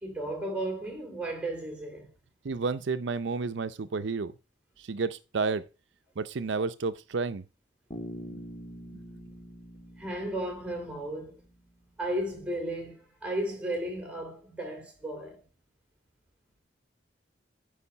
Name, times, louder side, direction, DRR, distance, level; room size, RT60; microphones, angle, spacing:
voice 1, 0.0-2.1 10.0-11.4 12.0-15.5, right 1 dB, 5° right, 2.9 m, -34 dB
voice 2, 2.4-4.3 4.8-5.6 6.2-7.4, right 4 dB, 80° right, 0.5 m, -31 dB
Bass guitar, 7.9-11.8, equal, 25° left, 2.0 m, -45 dB
10.0 x 4.9 x 5.5 m
head